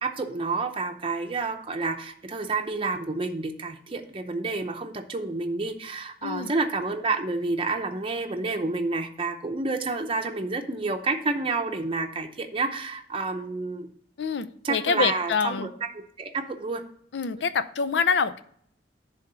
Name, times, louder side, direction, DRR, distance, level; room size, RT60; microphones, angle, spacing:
voice 1, 0.0-13.9 14.6-15.7 16.2-16.8, right 3 dB, 30° right, 4 dB, 0.7 m, -29 dB
voice 2, 6.2-6.5 14.2-15.7 17.1-18.4, left 5 dB, 80° left, 14 dB, 0.5 m, -26 dB
10.5 x 3.6 x 6.7 m, 0.65 s
head